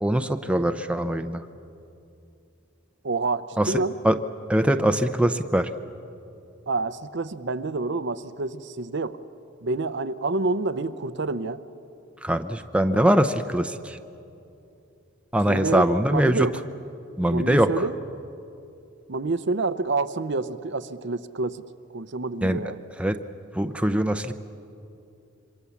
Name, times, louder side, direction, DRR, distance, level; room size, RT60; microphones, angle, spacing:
voice 1, 0.0-1.4 3.6-3.7 4.0-4.2 4.5-5.7 12.2-14.0 15.3-16.5 17.2-17.7 22.4-22.7 23.0-23.2 23.5-24.3, right 1 dB, 5° right, 7 dB, 0.6 m, -22 dB
voice 2, 3.0-3.9 6.7-9.2 9.6-11.6 15.5-16.5 17.3-18.0 19.1-21.6 21.9-22.8, right 3 dB, 55° right, 12 dB, 0.7 m, -28 dB
27.0 x 24.5 x 7.2 m, 2.7 s
head